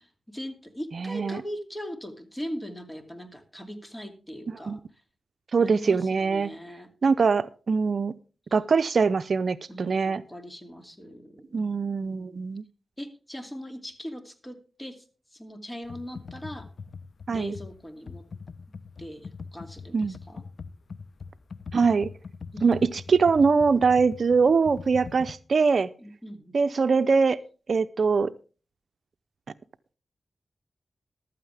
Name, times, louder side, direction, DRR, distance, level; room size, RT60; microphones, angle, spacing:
voice 1, 0.0-4.8 5.6-6.9 9.7-12.4 13.0-15.0 15.3-16.7 17.3-18.2 18.7-20.4 22.5-22.9 26.0-26.6, equal, 15° left, 7 dB, 2.6 m, -40 dB
voice 2, 1.0-1.4 4.7-4.8 5.5-6.5 7.0-8.1 8.5-10.2 11.5-12.6 17.3-17.5 19.9-20.2 21.7-22.1 22.6-22.8 23.1-25.9 26.5-27.4 27.7-28.3, right 5 dB, 65° right, 13 dB, 0.6 m, -22 dB
Computer keyboard, 15.8-25.3, left 5 dB, 65° left, 0.7 m, -41 dB
14.5 x 12.5 x 3.4 m, 0.36 s
cardioid pair, 65°, 0 cm